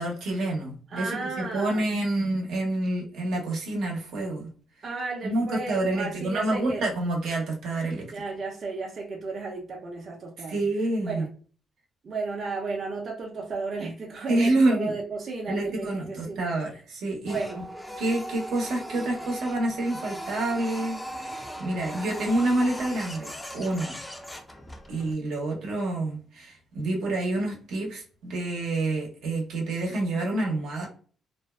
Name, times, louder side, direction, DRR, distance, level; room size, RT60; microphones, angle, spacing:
voice 1, 0.0-4.5 5.2-8.1 10.5-11.3 14.3-15.0 15.5-17.4 18.0-24.0 24.9-30.9, right 2 dB, 80° right, -1 dB, 0.8 m, -28 dB
voice 2, 0.9-1.9 4.8-6.8 8.1-10.6 11.0-11.3 12.0-16.4 17.3-17.6, right 3 dB, 50° right, -1 dB, 0.6 m, -34 dB
Printer, 17.3-25.1, equal, 10° left, 0.5 m, -38 dB
2.4 x 2.2 x 2.3 m, 0.41 s
cardioid pair, 90°, 0 cm